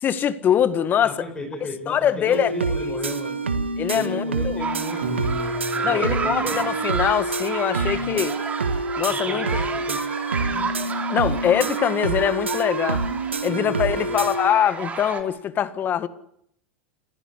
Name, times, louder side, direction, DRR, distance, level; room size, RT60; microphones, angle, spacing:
voice 1, 0.0-1.1 1.9-2.5 3.8-4.6 5.8-8.4 9.0-9.6 11.1-13.0 13.4-16.1, left 9 dB, 30° left, 1.8 m, -23 dB
voice 2, 1.0-3.4 3.9-6.6 7.9-8.2 9.1-10.0 10.5-10.7 13.4-14.3, left 2 dB, 15° left, 6.0 m, -36 dB
sound 1, 2.3-14.5, right 3 dB, 85° right, 1.7 m, -27 dB
sound 2, 4.6-15.2, right 5 dB, 25° right, 4.1 m, -32 dB
Piano, 5.0-7.2, equal, 65° right, 3.7 m, -35 dB
30.0 x 15.5 x 8.4 m
figure-of-eight pair, 90°, 6 cm